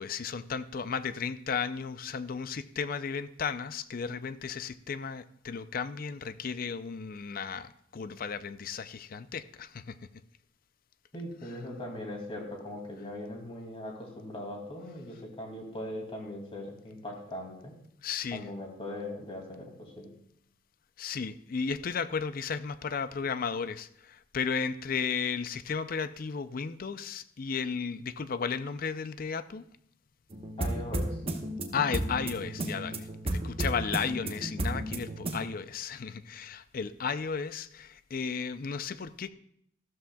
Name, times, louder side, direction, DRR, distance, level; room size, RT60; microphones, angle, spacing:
voice 1, 0.0-10.0 11.4-11.6 18.0-18.5 21.0-29.6 31.7-39.3, left 6 dB, 50° left, 0.5 m, -34 dB
voice 2, 11.1-17.7 18.3-19.7 20.0-20.1 30.6-31.2, left 1 dB, 30° left, 2.4 m, -40 dB
sound 1, 30.3-35.4, right 1 dB, 30° right, 1.0 m, -33 dB
14.0 x 12.5 x 2.3 m
head